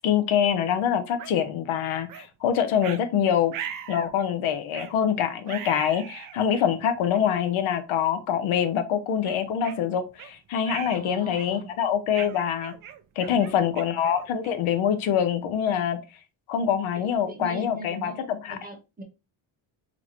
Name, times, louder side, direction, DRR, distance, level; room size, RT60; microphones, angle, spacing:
voice 1, 0.0-3.5 3.9-12.7 13.2-16.0 16.5-18.6, left 8 dB, 85° left, 0.7 m, -25 dB
sound 1, 1.2-1.3 2.1-2.3 2.8-3.0 3.5-4.1 4.7-5.0 5.5-6.4 7.1-7.2 7.9-8.1 8.6-8.7 9.2-10.3 10.7-11.0 11.4-11.7 12.1-14.7, right 9 dB, 45° right, 0.5 m, -39 dB
voice 2, 10.9-11.7 13.2-13.9 16.9-18.2 18.5-19.0, right 2 dB, 20° right, 0.9 m, -40 dB
3.9 x 2.4 x 3.0 m
cardioid pair, 110°, 47 cm